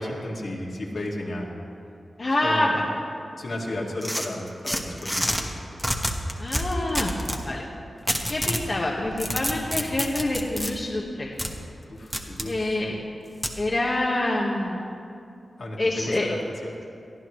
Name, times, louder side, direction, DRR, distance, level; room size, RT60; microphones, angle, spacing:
voice 1, 0.0-1.5 2.4-2.7 3.4-5.7 11.9-12.8 15.6-16.7, left 1 dB, 60° left, -2 dB, 2.2 m, -33 dB
voice 2, 2.2-2.8 6.4-7.1 7.4-7.6 8.3-11.3 12.5-13.0 13.6-14.9 15.8-16.3, left 2 dB, 40° left, -4 dB, 1.4 m, -26 dB
sound 1, 4.0-5.4 5.8-7.4 8.1-8.7 9.1-10.7 11.4-11.5 12.1-12.5 13.4-13.6, equal, ahead, 1.2 m, -27 dB
22.5 x 14.5 x 3.2 m, 2.6 s
wide cardioid pair, 100°, 0 cm